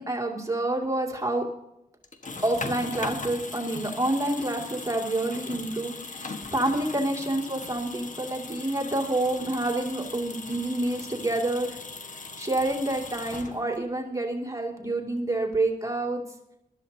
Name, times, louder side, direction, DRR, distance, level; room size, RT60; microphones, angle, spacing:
voice 1, 0.0-1.4 2.4-16.2, right 1 dB, 20° right, 0 dB, 2.4 m, -28 dB
sound 1, 2.0-13.9, left 3 dB, 50° left, 1.4 m, -39 dB
20.0 x 13.0 x 2.8 m, 0.87 s
cardioid pair, 60°, 16 cm